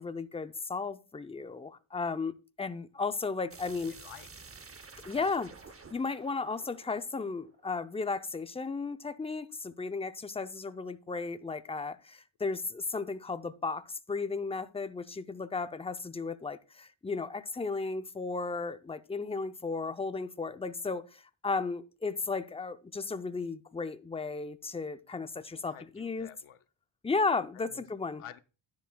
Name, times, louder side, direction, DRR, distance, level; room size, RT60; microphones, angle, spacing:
voice 1, 0.0-3.9 5.0-5.5 5.9-26.3 27.0-28.2, left 4 dB, 15° left, 0.4 m, -34 dB
sound 1, 3.5-8.2, right 4 dB, 30° right, 0.7 m, -52 dB
voice 2, 3.9-4.5 25.5-26.6 27.5-27.8 28.2-28.4, left 10 dB, 85° left, 0.7 m, -50 dB
10.5 x 10.0 x 2.2 m
wide cardioid pair, 105°, 50 cm